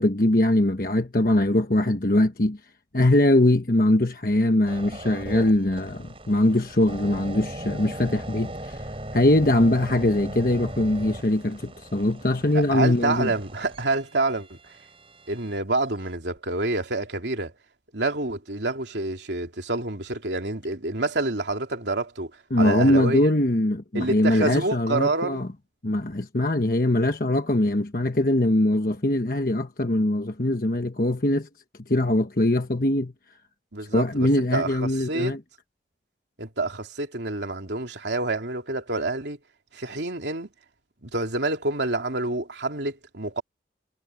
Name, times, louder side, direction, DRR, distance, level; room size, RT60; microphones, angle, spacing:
voice 1, 0.0-2.6 2.9-8.8 9.1-13.3 22.5-25.5 25.8-31.5 31.9-33.1 33.9-35.4, left 1 dB, 55° left, 1.2 m, -22 dB
sound 1, 4.7-15.6 16.2-16.4, right 1 dB, 30° right, 6.3 m, -39 dB
voice 2, 12.5-14.6 15.3-17.5 17.9-22.3 22.6-23.2 23.9-25.4 27.0-27.1 33.7-35.4 36.4-39.4 39.7-40.5 41.0-43.4, right 2 dB, 85° right, 3.0 m, -28 dB
head